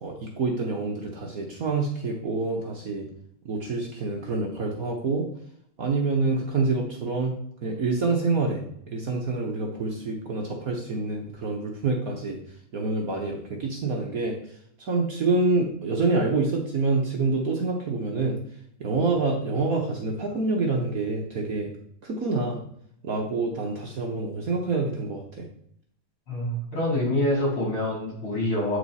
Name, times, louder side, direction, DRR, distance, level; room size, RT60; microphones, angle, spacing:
voice 1, 0.0-3.1 3.4-5.2 5.8-7.3 7.6-12.4 12.7-14.4 14.8-18.4 18.8-21.7 22.0-22.6 23.0-25.4, right 3 dB, 50° right, 0 dB, 1.2 m, -27 dB
voice 2, 26.3-28.8, left 1 dB, 75° left, -3 dB, 4.2 m, -26 dB
8.3 x 4.9 x 4.1 m, 0.68 s
omnidirectional pair, 2.4 m